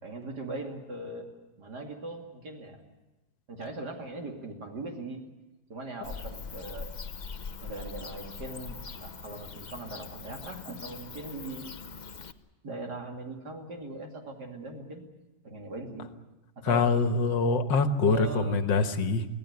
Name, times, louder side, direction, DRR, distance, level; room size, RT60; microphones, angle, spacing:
voice 1, 0.0-1.3 1.6-2.8 3.5-5.3 5.7-6.9 7.6-11.7 12.6-15.1 15.4-16.1 16.6-17.0 18.1-18.6, right 2 dB, 60° right, 2 dB, 3.3 m, -40 dB
Bird / Cricket, 6.0-12.3, left 5 dB, 40° left, 0.6 m, -42 dB
voice 2, 16.6-19.3, left 4 dB, 80° left, 8 dB, 2.0 m, -24 dB
25.0 x 16.5 x 9.5 m, 1.1 s
omnidirectional pair, 2.0 m